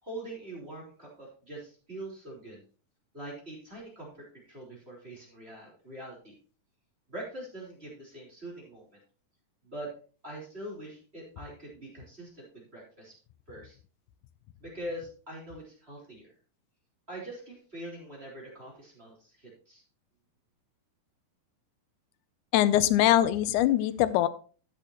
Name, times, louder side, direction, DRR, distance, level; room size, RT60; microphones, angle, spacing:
voice 1, 0.0-2.6 3.1-6.3 7.1-8.8 9.6-9.9 10.2-13.1 13.5-13.8 14.6-16.3 17.1-19.8, right 1 dB, 15° right, -3 dB, 3.8 m, -43 dB
voice 2, 22.5-24.3, left 13 dB, 80° left, 14 dB, 1.8 m, -22 dB
13.0 x 8.5 x 2.9 m, 0.38 s
omnidirectional pair, 4.1 m